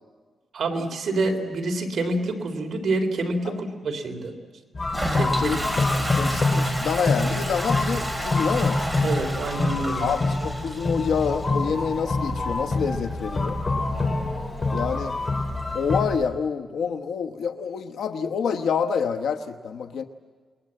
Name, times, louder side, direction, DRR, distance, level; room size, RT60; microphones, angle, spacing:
voice 1, 0.5-4.3 5.1-5.6 9.0-10.1, right 2 dB, 55° right, 3 dB, 3.5 m, -27 dB
sound 1, 4.7-16.1, left 2 dB, 30° left, 3.4 m, -26 dB
Toilet flush, 4.8-16.2, right 1 dB, 5° right, 4.0 m, -33 dB
voice 2, 5.3-8.8 10.0-13.6 14.7-15.2 15.7-20.0, left 6 dB, 80° left, 6 dB, 1.1 m, -27 dB
28.5 x 21.0 x 7.7 m, 1.5 s
wide cardioid pair, 140°, 0 cm